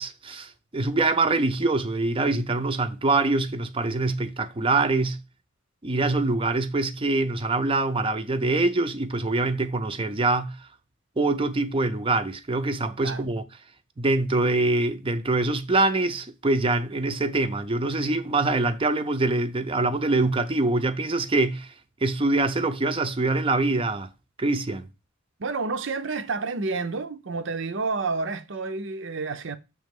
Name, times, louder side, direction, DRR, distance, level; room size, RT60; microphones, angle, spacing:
voice 1, 0.0-5.2 5.8-10.6 11.2-13.4 14.0-21.7 22.0-24.1 24.4-24.9, right 2 dB, 30° right, 0.6 m, -24 dB
voice 2, 25.4-29.6, right 4 dB, 70° right, 0.7 m, -29 dB
6.6 x 3.2 x 5.2 m
head